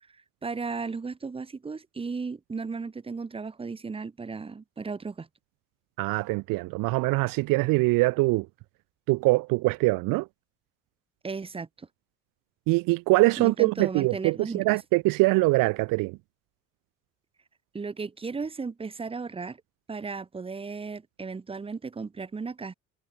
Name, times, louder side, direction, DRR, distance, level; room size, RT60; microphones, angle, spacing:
voice 1, 0.4-5.3 11.2-11.9 13.4-14.8 17.7-19.6 19.9-22.7, right 4 dB, 15° right, 3.9 m, -35 dB
voice 2, 6.0-8.5 9.1-10.3 12.7-16.2, right 23 dB, 85° right, 0.7 m, -23 dB
cardioid pair, 170°, 32 cm